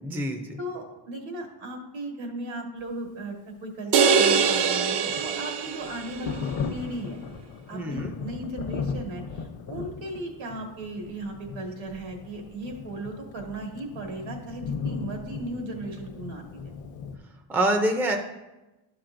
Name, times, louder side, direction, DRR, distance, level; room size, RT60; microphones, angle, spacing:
voice 1, 0.0-0.6 7.7-8.1 17.5-18.2, right 1 dB, 5° right, 4 dB, 0.4 m, -26 dB
voice 2, 0.6-7.2 7.7-16.6, right 1 dB, 75° right, 2 dB, 1.7 m, -36 dB
sound 1, 3.9-6.3, right 6 dB, 60° right, 0.6 m, -23 dB
Thunder, 4.3-17.2, left 5 dB, 70° left, 0.8 m, -37 dB
11.5 x 5.9 x 2.6 m, 1.0 s
cardioid pair, 175°, 46 cm